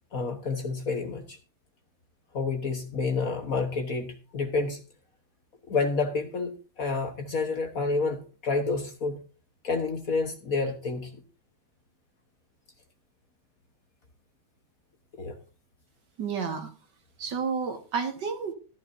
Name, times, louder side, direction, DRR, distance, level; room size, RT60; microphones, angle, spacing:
voice 1, 0.1-1.4 2.3-4.8 5.7-9.2 9.6-11.2 15.1-15.3, left 4 dB, 50° left, 5 dB, 1.4 m, -29 dB
voice 2, 16.2-16.7 17.2-18.5, right 6 dB, 60° right, 6 dB, 2.0 m, -31 dB
14.0 x 12.0 x 2.6 m, 0.34 s
omnidirectional pair, 2.3 m